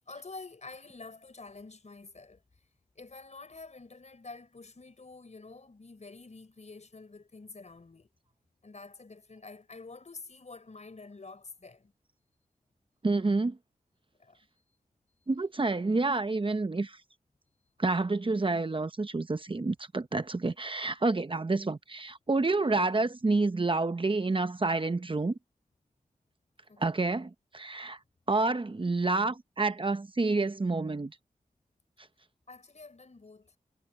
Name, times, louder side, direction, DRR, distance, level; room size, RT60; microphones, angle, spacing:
voice 1, 0.1-2.4 2.9-8.1 8.6-11.9 14.2-14.4 26.7-27.0 32.5-33.6, left 3 dB, 50° left, 4.7 m, -48 dB
voice 2, 13.0-13.6 15.3-17.0 17.8-25.4 26.8-28.0 28.3-31.1, right 3 dB, 35° right, 0.9 m, -28 dB
wide cardioid pair, 65°, 15 cm